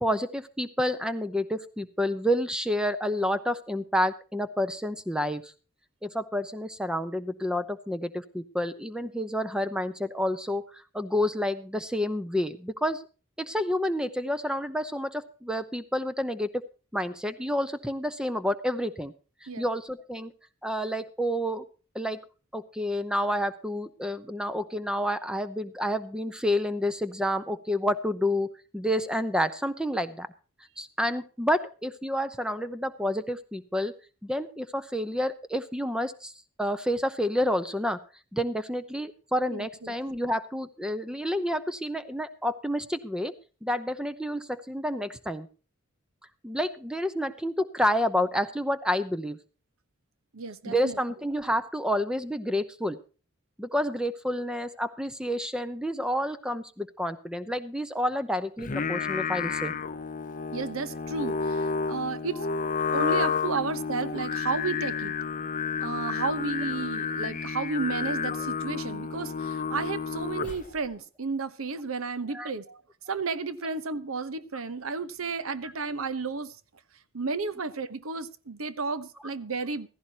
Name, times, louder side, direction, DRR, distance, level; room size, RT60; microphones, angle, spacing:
voice 1, 0.0-5.5 6.0-10.6 10.9-13.0 13.4-16.6 16.9-19.1 19.6-20.3 20.6-21.6 21.9-22.2 22.5-28.5 28.7-30.3 30.8-33.9 34.2-36.3 36.6-38.0 38.3-43.3 43.6-45.5 46.4-49.4 50.6-53.0 53.6-59.7 72.3-72.5 73.6-73.7 75.6-75.7, equal, 5° right, 0.8 m, -29 dB
voice 2, 39.5-39.9 50.3-51.0 60.5-62.5 62.9-65.1 65.8-72.8 73.1-76.6 77.1-79.9, right 4 dB, 85° right, 1.0 m, -32 dB
Singing, 58.6-70.8, left 5 dB, 40° left, 0.6 m, -31 dB
16.0 x 14.5 x 2.9 m
head